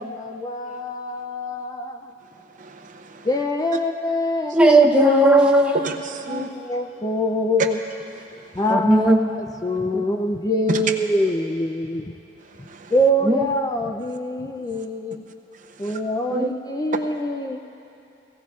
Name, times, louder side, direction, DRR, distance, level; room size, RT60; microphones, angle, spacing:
voice 1, 0.0-2.1 3.2-4.5 5.0-5.2 6.3-7.8 8.6-12.1 12.9-15.3 15.8-17.6, left 1 dB, 20° left, 4 dB, 0.4 m, -25 dB
voice 2, 2.6-3.3 5.7-6.5 10.7-10.8 12.7-12.9 15.8-16.0, right 2 dB, 45° right, 5 dB, 0.7 m, -30 dB
voice 3, 4.5-5.8 8.7-9.2 13.3-13.4 16.3-16.5, right 1 dB, 5° right, 0 dB, 0.7 m, -15 dB
18.0 x 16.0 x 2.4 m, 2.8 s
head